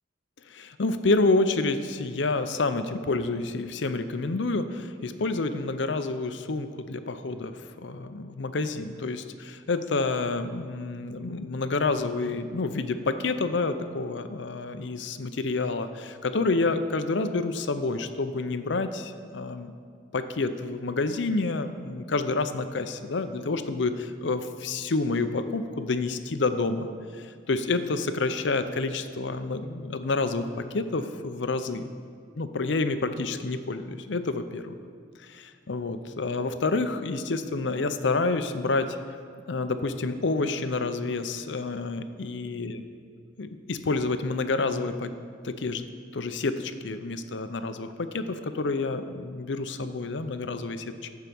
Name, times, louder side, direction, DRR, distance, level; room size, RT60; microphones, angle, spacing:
voice 1, 0.5-7.5 7.8-19.7 20.1-26.9 27.2-31.9 32.4-34.7 35.2-39.0 39.5-42.8 43.4-45.1 45.4-45.9 46.1-50.9, left 3 dB, 70° left, 10 dB, 0.6 m, -28 dB
13.5 x 4.8 x 6.9 m, 2.1 s
head